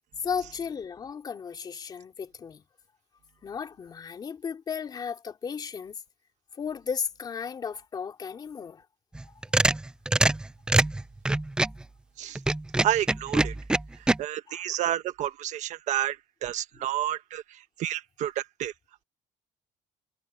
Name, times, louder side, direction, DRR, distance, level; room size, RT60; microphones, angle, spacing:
voice 1, 0.2-2.6 3.4-6.0 6.6-8.8 14.5-14.6, left 6 dB, 30° left, 2.9 m, -35 dB
sound 1, 9.1-11.8 12.3-14.2, right 2 dB, 5° right, 0.3 m, -24 dB
voice 2, 12.8-13.5 14.2-16.2 16.4-17.4 17.8-18.7, right 12 dB, 60° right, 1.4 m, -30 dB
cardioid pair, 170°, 14 cm